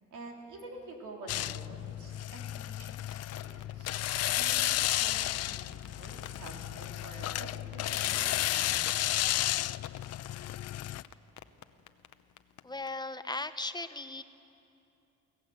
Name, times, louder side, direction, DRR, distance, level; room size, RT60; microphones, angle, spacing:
voice 1, 0.1-8.8, right 2 dB, 80° right, 0 dB, 3.7 m, -48 dB
sound 1, 1.3-11.0, left 14 dB, 55° left, 0.4 m, -32 dB
sound 2, 2.9-12.9, left 12 dB, 75° left, 0.9 m, -48 dB
voice 2, 12.6-14.2, left 2 dB, 15° left, 11 dB, 0.9 m, -37 dB
25.0 x 17.0 x 8.0 m, 2.8 s
cardioid pair, 90°, 30 cm